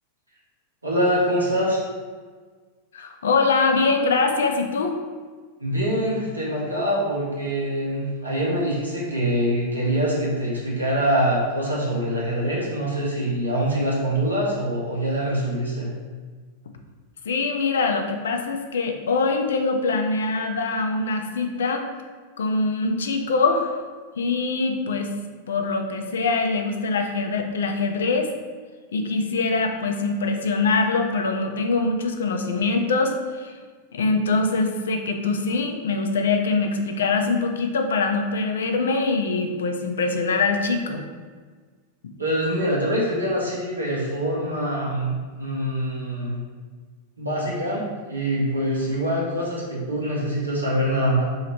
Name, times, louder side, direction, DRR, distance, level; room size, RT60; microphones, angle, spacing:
voice 1, 0.8-1.8 5.6-15.9 42.2-46.4 47.2-51.2, equal, 80° right, -5 dB, 1.0 m, -24 dB
voice 2, 2.9-5.0 17.3-21.9 22.4-23.7 24.2-25.1 25.5-28.3 28.9-33.5 33.9-41.0, left 3 dB, 65° left, 5 dB, 0.4 m, -23 dB
3.0 x 2.8 x 4.2 m, 1.5 s
figure-of-eight pair, 90°, 0 cm